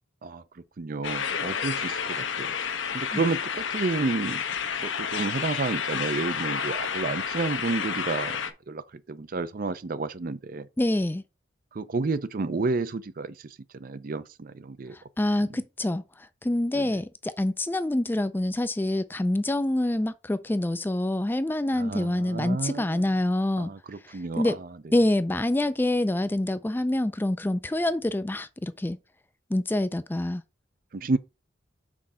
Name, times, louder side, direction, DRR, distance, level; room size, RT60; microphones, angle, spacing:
voice 1, 0.8-2.5 2.9-4.4 4.8-10.7 11.7-15.0 15.5-15.6 16.7-17.0 21.7-23.1 23.6-24.7 30.9-31.2, right 3 dB, 45° right, 0.5 m, -31 dB
sound 1, 1.0-8.5, left 7 dB, 80° left, 0.9 m, -30 dB
voice 2, 10.8-11.2 15.2-16.0 16.4-23.7 24.1-24.6 24.9-29.0 29.5-30.4, left 1 dB, 10° left, 0.4 m, -26 dB
6.2 x 3.7 x 5.5 m
head